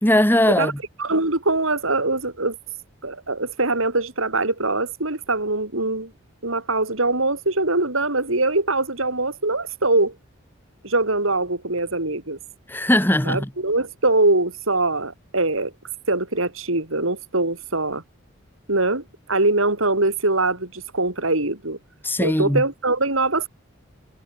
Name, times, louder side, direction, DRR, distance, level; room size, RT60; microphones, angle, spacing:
voice 1, 0.0-0.8 12.7-13.5 22.0-22.6, left 1 dB, 10° left, 1.7 m, -19 dB
voice 2, 1.0-2.6 3.0-6.1 6.4-10.1 10.8-12.4 13.2-15.7 16.1-18.0 18.7-21.8 22.2-23.5, right 2 dB, 85° right, 5.5 m, -22 dB
head